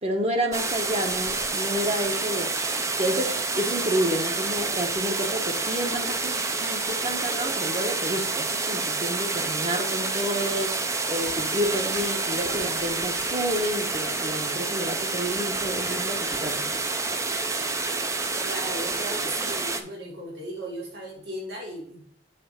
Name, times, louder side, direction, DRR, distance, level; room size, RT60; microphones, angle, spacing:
voice 1, 0.0-2.5 3.0-10.8 11.1-16.7, equal, 35° right, 3 dB, 1.0 m, -30 dB
sound 1, 0.5-19.8, right 3 dB, 15° right, 0.5 m, -28 dB
voice 2, 18.4-22.1, right 1 dB, 75° right, -2 dB, 2.1 m, -36 dB
6.8 x 3.3 x 5.0 m, 0.66 s
head